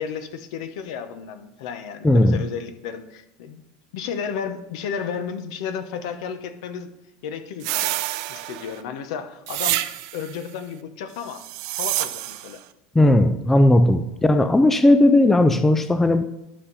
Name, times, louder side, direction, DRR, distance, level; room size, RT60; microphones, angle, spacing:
voice 1, 0.0-3.6 3.9-6.9 7.2-7.9 8.3-9.8 10.1-11.5 11.8-12.6, left 7 dB, 70° left, 0.9 m, -33 dB
voice 2, 2.0-2.4 12.9-16.2, left 1 dB, 10° left, 0.3 m, -16 dB
sound 1, 7.6-8.8 9.5-10.3 11.3-12.6, right 17 dB, 60° right, 0.5 m, -27 dB
11.5 x 5.6 x 4.1 m
supercardioid pair, 150°, 3 cm